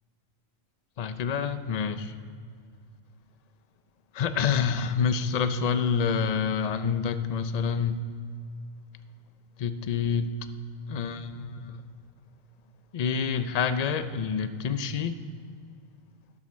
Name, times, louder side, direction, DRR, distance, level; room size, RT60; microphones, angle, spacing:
voice 1, 1.0-2.1 4.1-8.0 9.6-10.3 10.9-11.8 12.9-15.2, left 6 dB, 50° left, 11 dB, 0.4 m, -27 dB
12.5 x 7.7 x 6.2 m, 2.1 s
omnidirectional pair, 1.4 m